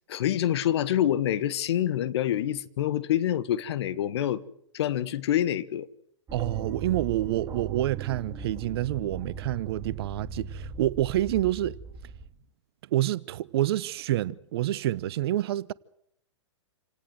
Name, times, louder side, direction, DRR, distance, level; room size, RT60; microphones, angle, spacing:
voice 1, 0.1-4.4 4.7-5.9, left 11 dB, 60° left, 1.5 m, -26 dB
sound 1, 6.3-12.3, right 6 dB, 25° right, 2.9 m, -38 dB
voice 2, 6.3-11.8 12.9-15.7, right 14 dB, 55° right, 0.9 m, -28 dB
28.0 x 18.0 x 7.9 m
hypercardioid pair, 115°, 16 cm